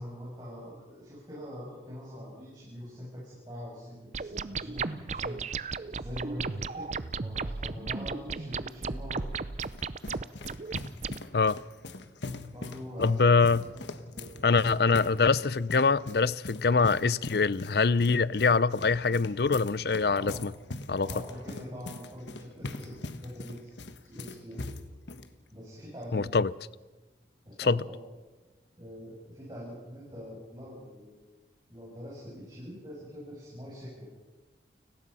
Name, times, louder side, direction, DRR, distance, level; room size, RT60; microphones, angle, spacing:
voice 1, 0.0-5.4 5.9-6.9 7.1-9.2 12.5-13.8 14.1-14.8 20.2-20.4 21.0-23.7 24.0-24.7 25.5-26.2 27.4-28.0 28.8-31.2 31.7-34.2, equal, 25° right, 7.0 m, -43 dB
sound 1, 4.1-11.2, right 4 dB, 40° right, 0.6 m, -35 dB
sound 2, 9.2-25.3, left 2 dB, 85° left, 1.4 m, -42 dB
voice 2, 13.0-13.6 14.4-20.5 20.9-21.1 26.1-26.5 27.7-27.8, left 4 dB, 60° left, 0.6 m, -24 dB
30.0 x 18.5 x 5.6 m
head